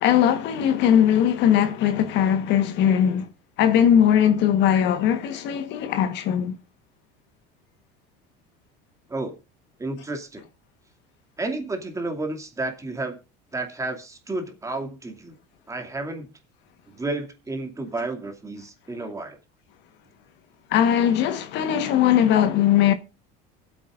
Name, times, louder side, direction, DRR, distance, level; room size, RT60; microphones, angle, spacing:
voice 1, 0.0-3.3 3.6-6.5 20.7-22.9, left 9 dB, 60° left, 1.3 m, -20 dB
voice 2, 9.8-10.4 11.4-13.2 13.5-15.3 15.7-16.3 17.0-19.4, right 2 dB, 15° right, 2.4 m, -31 dB
23.5 x 8.3 x 2.5 m
cardioid pair, 125°, 21 cm